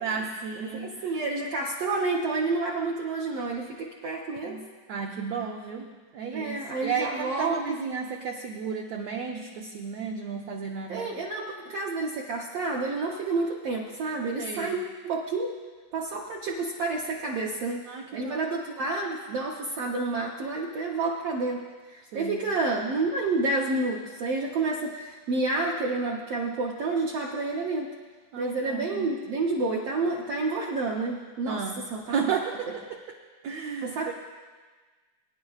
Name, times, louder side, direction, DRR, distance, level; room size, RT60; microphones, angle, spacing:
voice 1, 0.0-1.2 4.4-11.1 14.4-14.7 17.9-18.5 22.1-22.4 28.3-29.1 31.5-31.8 32.1-33.0 33.4-34.1, right 6 dB, 85° right, 1 dB, 1.4 m, -33 dB
voice 2, 0.6-4.6 6.3-7.8 10.9-15.5 15.9-27.9 28.4-32.4 33.8-34.1, right 3 dB, 70° right, -3 dB, 1.5 m, -29 dB
23.0 x 10.0 x 2.4 m, 1.4 s
omnidirectional pair, 3.8 m